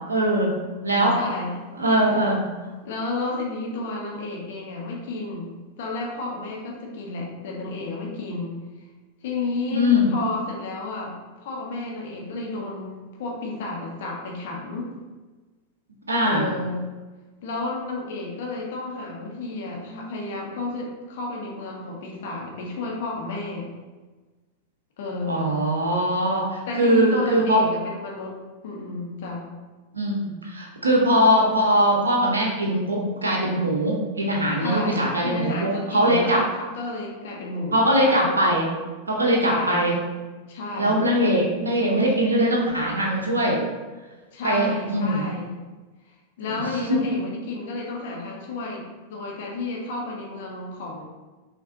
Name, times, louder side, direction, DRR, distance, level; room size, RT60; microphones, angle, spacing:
voice 1, 0.1-0.5 0.8-1.2 1.8-2.4 9.7-10.1 16.1-16.4 25.3-27.6 29.9-36.4 37.7-38.7 39.1-39.9 40.7-43.6 44.4-45.2 46.9-47.0, equal, 75° right, -2 dB, 0.7 m, -21 dB
voice 2, 0.9-1.6 2.0-2.1 2.8-5.5 5.8-8.6 9.2-14.9 16.2-16.9 17.4-23.7 25.0-25.6 26.7-28.4 28.6-29.4 34.6-38.3 39.4-39.9 40.5-41.1 44.3-45.5 46.4-51.0, left 3 dB, 55° left, -2 dB, 0.9 m, -31 dB
5.5 x 2.6 x 2.7 m, 1.3 s
figure-of-eight pair, 90°, 0 cm